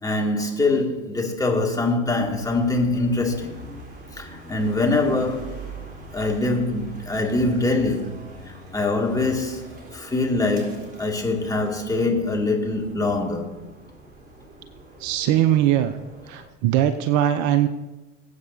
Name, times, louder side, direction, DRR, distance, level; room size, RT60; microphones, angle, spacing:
voice 1, 0.0-3.6 4.1-5.6 6.1-8.2 8.5-13.6, left 2 dB, 10° left, 2.4 m, -24 dB
sound 1, 2.2-16.5, right 1 dB, 20° right, 4.0 m, -43 dB
voice 2, 15.0-15.9 16.3-17.7, right 11 dB, 50° right, 0.8 m, -20 dB
21.5 x 8.2 x 2.8 m
hypercardioid pair, 85°, 39 cm